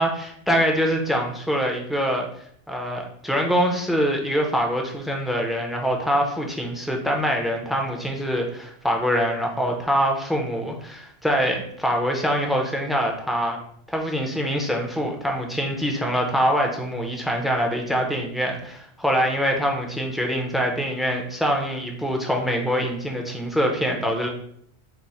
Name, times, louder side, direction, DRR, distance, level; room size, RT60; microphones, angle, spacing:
voice 1, 0.0-2.3 2.7-13.6 13.9-24.3, equal, ahead, 1 dB, 0.4 m, -24 dB
5.9 x 2.1 x 4.2 m, 0.66 s
omnidirectional pair, 1.2 m